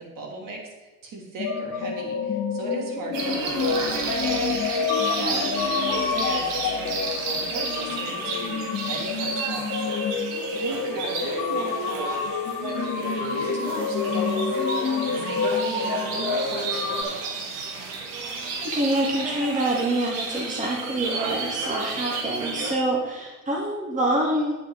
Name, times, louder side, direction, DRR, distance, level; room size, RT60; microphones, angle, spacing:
voice 1, 0.0-4.9 5.2-9.8 10.2-12.2 12.6-17.4, right 3 dB, 45° right, -1 dB, 3.6 m, -37 dB
sound 1, 1.4-17.0, left 5 dB, 40° left, 2.4 m, -28 dB
sound 2, 3.1-22.7, right 4 dB, 70° right, 2.3 m, -32 dB
voice 2, 5.2-5.6 18.6-24.5, right 1 dB, 15° right, -2 dB, 2.1 m, -26 dB
9.4 x 8.2 x 5.1 m, 1.1 s
hypercardioid pair, 80°, 43 cm